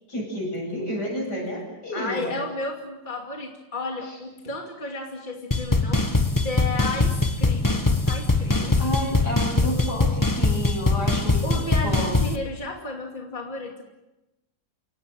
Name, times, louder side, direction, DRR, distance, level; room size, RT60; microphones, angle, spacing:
voice 1, 0.1-2.5 4.1-4.2 8.8-12.2, equal, 80° left, 0 dB, 8.7 m, -30 dB
voice 2, 1.9-6.1 6.4-8.8 11.4-13.8, left 2 dB, 30° left, 1 dB, 2.7 m, -33 dB
sound 1, 5.5-12.4, left 2 dB, 15° left, 1.1 m, -22 dB
29.0 x 18.0 x 7.6 m, 0.98 s
omnidirectional pair, 1.7 m